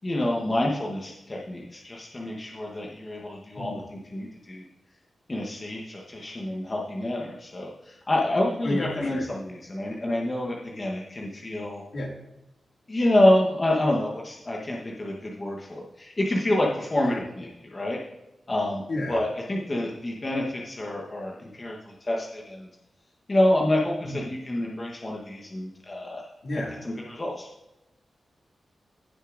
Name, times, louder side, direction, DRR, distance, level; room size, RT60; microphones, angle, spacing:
voice 1, 0.0-4.6 5.3-11.8 12.9-18.0 18.5-18.8 19.1-22.7 23.3-26.2 26.8-27.5, left 1 dB, 25° left, -2 dB, 1.0 m, -27 dB
voice 2, 3.5-3.9 8.6-9.3 11.9-12.1 17.0-17.2 18.9-19.2 24.0-24.3 26.4-26.8, left 1 dB, 60° left, -1 dB, 2.1 m, -32 dB
16.0 x 6.4 x 2.5 m, 0.92 s
wide cardioid pair, 150°, 0 cm